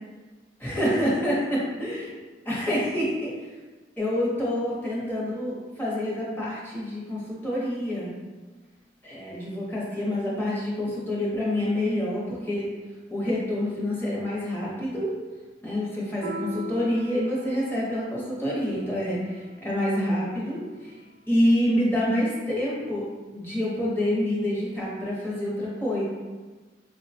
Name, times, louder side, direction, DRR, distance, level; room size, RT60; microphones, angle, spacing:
voice 1, 0.6-2.1 2.4-3.5 4.0-8.1 9.0-12.7 13.1-15.1 15.6-20.9 21.3-23.1 23.3-26.0, left 1 dB, 10° left, -6 dB, 0.9 m, -27 dB
Piano, 16.2-21.2, left 1 dB, 80° right, 0.4 m, -43 dB
4.6 x 2.2 x 2.7 m, 1.3 s
head